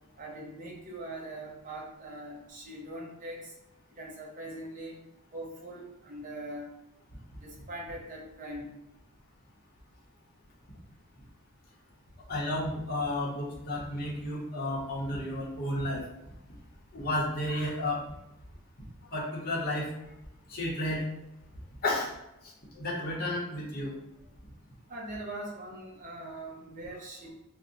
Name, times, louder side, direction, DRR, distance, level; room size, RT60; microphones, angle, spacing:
voice 1, 0.2-3.5 4.0-5.0 5.3-6.7 7.4-8.7 24.9-27.3, right 1 dB, 35° right, -2 dB, 0.7 m, -41 dB
voice 2, 12.3-16.0 16.9-18.0 19.1-19.9 20.5-21.0 21.8-22.1 22.8-23.9, left 1 dB, 45° left, -4 dB, 0.8 m, -32 dB
2.6 x 2.1 x 3.7 m, 0.89 s
head